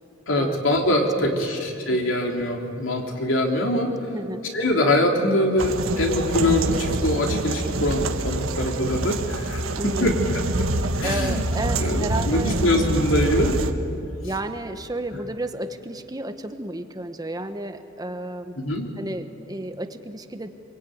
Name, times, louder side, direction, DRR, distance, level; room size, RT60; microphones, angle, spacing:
voice 1, 0.3-3.9 4.5-10.7 11.0-11.4 11.8-13.6 18.6-18.9, left 1 dB, 65° left, 2 dB, 3.5 m, -23 dB
voice 2, 1.2-1.6 4.1-4.4 9.8-10.1 10.8-12.6 14.2-18.6 19.0-20.5, right 1 dB, 20° right, 8 dB, 1.0 m, -32 dB
sound 1, 5.6-13.7, right 2 dB, 85° right, 1.4 m, -26 dB
25.0 x 23.5 x 9.3 m, 2.5 s
head